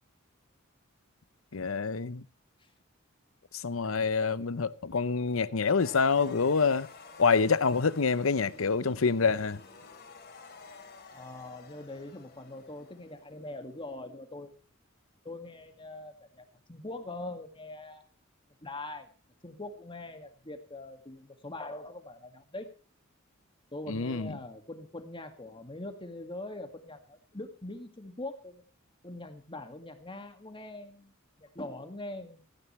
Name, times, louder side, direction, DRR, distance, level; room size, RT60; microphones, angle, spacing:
voice 1, 1.5-2.2 3.6-6.9 7.2-9.6 23.9-24.3, left 5 dB, 80° left, 0.8 m, -26 dB
sound 1, 5.8-13.9, left 4 dB, 50° left, 3.5 m, -51 dB
voice 2, 11.1-14.5 15.2-18.0 18.6-19.1 19.4-22.7 23.7-28.6 29.0-31.1 31.4-32.4, left 2 dB, 25° left, 2.0 m, -42 dB
17.0 x 15.0 x 3.2 m
head